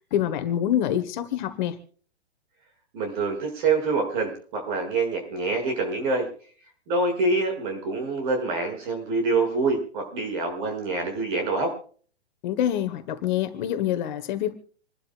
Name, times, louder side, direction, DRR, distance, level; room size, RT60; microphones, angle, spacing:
voice 1, 0.1-1.8 12.4-14.5, left 11 dB, 45° left, 10 dB, 1.5 m, -26 dB
voice 2, 2.9-6.3 6.9-11.7, right 3 dB, 50° right, 4 dB, 6.9 m, -26 dB
27.5 x 12.0 x 2.5 m, 0.44 s
figure-of-eight pair, 115°, 33 cm